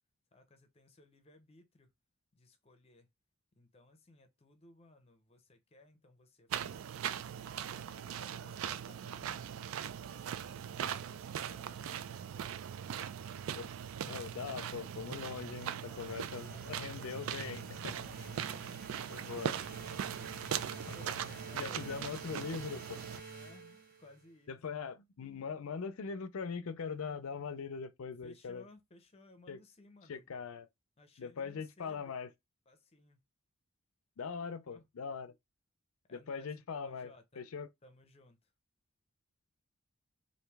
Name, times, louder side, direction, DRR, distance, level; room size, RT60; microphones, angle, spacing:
voice 1, 0.3-1.9 2.3-3.1 3.6-7.1 7.7-9.5 10.1-13.0 15.8-16.2 16.5-17.0 17.9-20.5 20.9-22.1 23.2-24.6 28.2-30.3 31.0-32.2 32.7-33.2 34.7-34.9 36.1-37.5 37.8-38.5, left 2 dB, 25° left, 0.6 m, -60 dB
sound 1, 6.5-23.2, right 9 dB, 65° right, 0.3 m, -40 dB
voice 2, 14.1-18.3 19.1-19.6 20.9-21.0 21.5-23.0 24.5-28.6 29.5-29.6 30.1-30.7 31.2-32.3 34.2-35.3 36.1-37.1 37.4-37.7, left 5 dB, 70° left, 0.5 m, -41 dB
sound 2, 16.0-24.3, right 3 dB, 45° right, 0.9 m, -50 dB
3.0 x 2.6 x 3.3 m
head